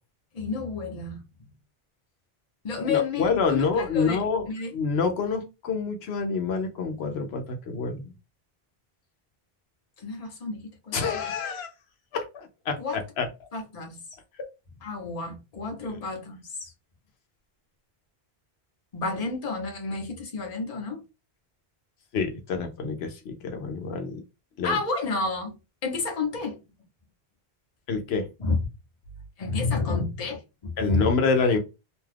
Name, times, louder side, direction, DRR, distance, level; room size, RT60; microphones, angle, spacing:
voice 1, 0.3-1.2 2.6-4.7 10.0-11.2 12.8-13.0 13.5-14.0 14.8-16.7 18.9-21.0 24.6-26.6 28.4-28.6 29.4-31.1, left 4 dB, 40° left, 0.8 m, -30 dB
voice 2, 2.8-4.5 4.7-8.1 10.9-11.7 12.1-12.8 13.2-13.3 22.1-24.2 24.6-24.8 27.9-28.3 30.8-31.6, left 4 dB, 80° left, 0.9 m, -27 dB
2.6 x 2.3 x 3.3 m
omnidirectional pair, 1.0 m